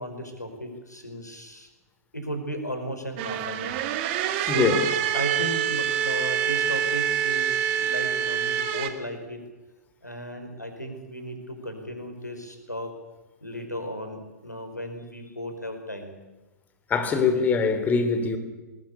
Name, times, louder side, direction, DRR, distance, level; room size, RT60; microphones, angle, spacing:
voice 1, 0.0-1.7 2.1-3.8 4.3-4.8 5.1-9.4 10.0-12.9 13.4-16.2 17.1-17.4, equal, 85° left, 6 dB, 5.0 m, -35 dB
sound 1, 3.2-8.9, right 9 dB, 40° right, 2.1 m, -26 dB
voice 2, 16.9-18.4, left 5 dB, 20° left, 8 dB, 3.3 m, -23 dB
20.5 x 20.0 x 8.5 m, 1.1 s
figure-of-eight pair, 105°, 9 cm